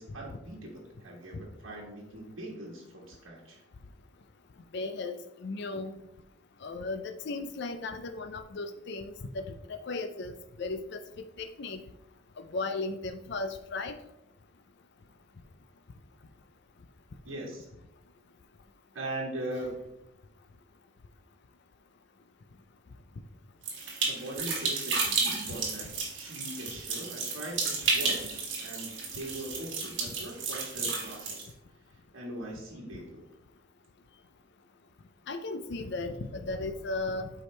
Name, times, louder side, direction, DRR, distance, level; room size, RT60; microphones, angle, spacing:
voice 1, 0.0-3.6 17.2-17.7 18.9-19.9 24.0-31.4 31.9-33.3, right 1 dB, 85° right, -4 dB, 1.4 m, -41 dB
voice 2, 4.7-5.9 6.6-11.0 11.4-11.8 12.4-14.0 30.1-30.2 35.3-37.3, left 3 dB, 60° left, 8 dB, 0.5 m, -36 dB
sound 1, 23.6-31.5, right 4 dB, 65° right, 1.9 m, -32 dB
8.1 x 4.8 x 3.2 m, 0.84 s
head